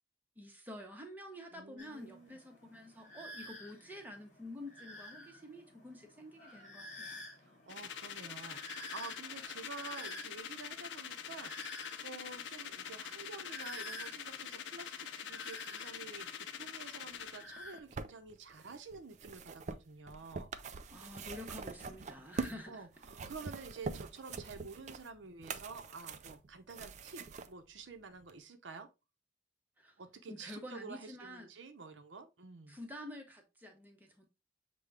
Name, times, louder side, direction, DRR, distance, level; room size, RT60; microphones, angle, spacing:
voice 1, 0.4-7.2 20.9-22.9 29.8-30.0 30.3-31.5 32.7-34.2, left 1 dB, 10° right, 0.8 m, -49 dB
voice 2, 1.5-2.4 7.4-20.5 22.7-28.9 30.0-32.8, right 4 dB, 80° right, 0.7 m, -50 dB
sound 1, 1.8-17.8, left 1 dB, 45° left, 1.3 m, -52 dB
sound 2, 7.7-17.4, left 8 dB, 75° left, 0.5 m, -45 dB
sound 3, 17.5-22.6 23.0-27.5 28.3-28.4, right 4 dB, 40° right, 0.3 m, -44 dB
6.5 x 2.2 x 3.3 m
head